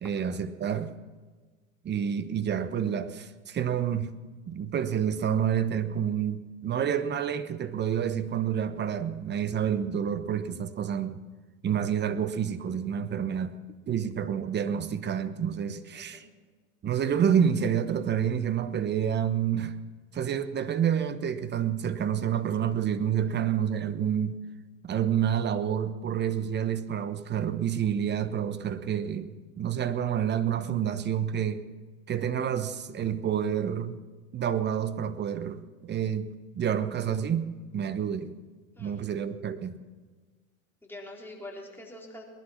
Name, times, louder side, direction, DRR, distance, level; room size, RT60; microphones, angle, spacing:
voice 1, 0.0-0.9 1.8-4.1 4.5-11.2 11.6-13.5 13.9-16.3 16.8-19.7 20.1-24.4 24.8-31.6 32.1-34.0 34.3-36.3 36.5-38.3 38.8-39.8, right 8 dB, 25° right, 12 dB, 1.0 m, -28 dB
voice 2, 15.9-16.3 23.2-23.3 38.8-39.0 40.8-42.2, left 1 dB, 5° left, -2 dB, 3.8 m, -44 dB
19.5 x 11.5 x 5.9 m, 1.4 s
hypercardioid pair, 95°, 42 cm